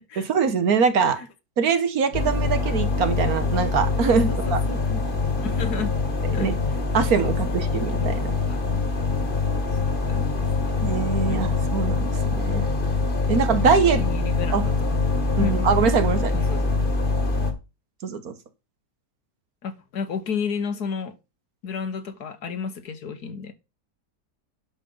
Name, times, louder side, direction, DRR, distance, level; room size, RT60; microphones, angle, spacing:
voice 1, 0.2-1.2 1.6-4.6 6.4-6.6 6.9-8.3 10.8-12.0 12.4-12.7 13.3-14.0 14.5-14.6 15.4-16.3 18.0-18.3, right 5 dB, 60° right, 1.5 m, -23 dB
sound 1, 2.1-17.5, left 3 dB, 30° left, 1.7 m, -24 dB
voice 2, 4.1-5.9 6.3-6.5 7.0-7.3 8.0-8.6 10.1-10.6 11.3-11.6 14.0-14.8 15.4-15.7 16.3-16.8 19.6-21.1 21.6-23.5, left 5 dB, 65° left, 1.7 m, -32 dB
11.5 x 5.3 x 5.5 m
omnidirectional pair, 1.8 m